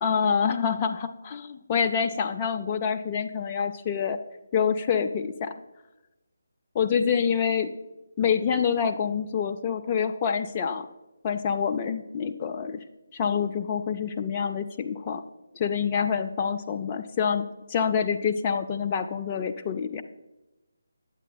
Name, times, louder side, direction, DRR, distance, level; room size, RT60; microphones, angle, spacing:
voice 1, 0.0-4.2 4.5-5.5 6.7-7.7 8.2-10.9 11.2-12.8 13.1-15.2 15.5-20.0, left 7 dB, 25° left, 5 dB, 0.3 m, -26 dB
8.9 x 8.2 x 2.2 m, 1.0 s
figure-of-eight pair, 150°, 0 cm